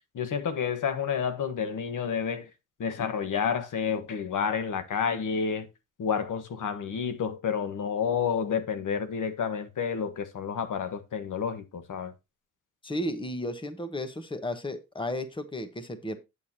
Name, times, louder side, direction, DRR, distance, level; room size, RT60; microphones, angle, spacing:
voice 1, 0.1-2.5 2.8-5.7 6.0-12.1, left 7 dB, 80° left, 1.4 m, -30 dB
voice 2, 12.8-16.2, left 1 dB, 15° left, 1.2 m, -33 dB
9.2 x 8.4 x 2.8 m
wide cardioid pair, 135°, 31 cm